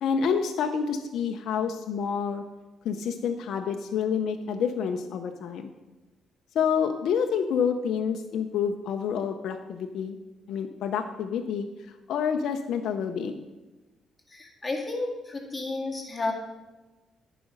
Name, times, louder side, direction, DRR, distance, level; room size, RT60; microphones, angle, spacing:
voice 1, 0.0-2.4 2.8-5.7 6.5-10.2 10.5-11.7 12.1-13.4, left 7 dB, 75° left, 5 dB, 0.6 m, -28 dB
voice 2, 14.3-16.3, left 3 dB, 20° left, -1 dB, 2.0 m, -32 dB
10.0 x 5.0 x 6.4 m, 1.1 s
cardioid pair, 90°, 0 cm